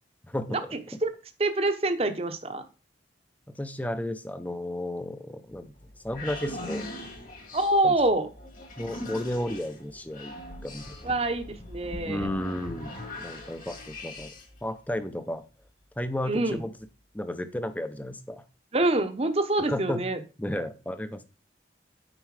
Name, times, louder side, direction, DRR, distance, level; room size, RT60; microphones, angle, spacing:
voice 1, 0.3-0.6 3.5-5.7 6.0-6.8 7.8-8.0 8.8-10.4 10.6-11.2 12.1-14.3 14.6-15.4 16.0-16.7 17.1-18.4 19.6-20.0 20.4-21.2, left 1 dB, 10° left, 10 dB, 0.6 m, -33 dB
voice 2, 1.4-2.6 7.5-8.3 11.0-12.3 16.2-16.6 18.7-20.2, right 2 dB, 35° right, 8 dB, 0.8 m, -25 dB
sound 1, 5.5-14.6, left 1 dB, 45° left, 1.9 m, -41 dB
9.2 x 4.5 x 4.8 m, 0.33 s
head